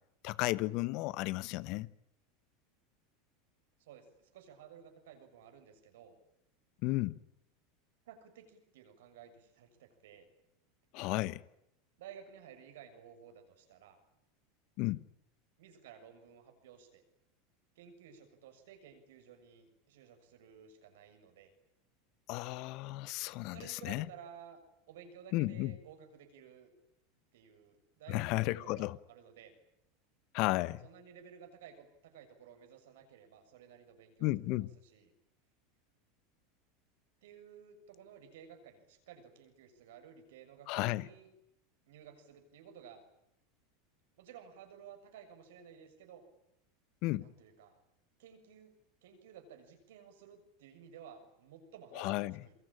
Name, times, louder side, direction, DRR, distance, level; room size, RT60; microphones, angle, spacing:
voice 1, 0.2-1.9 6.8-7.2 10.9-11.4 14.8-15.0 22.3-24.0 25.3-25.7 28.1-29.0 30.3-30.9 34.2-34.7 40.7-41.1 47.0-47.3 51.9-52.4, left 19 dB, 60° left, 1.1 m, -33 dB
voice 2, 3.8-6.1 8.1-10.3 12.0-14.0 15.6-17.0 17.7-21.5 23.5-24.6 24.9-26.7 27.3-29.5 30.8-35.1 37.2-41.3 41.9-43.0 44.2-46.2 47.2-47.8 48.2-48.8 49.0-52.5, right 8 dB, 75° right, 6.8 m, -55 dB
28.0 x 22.5 x 8.9 m
hypercardioid pair, 100°, 0 cm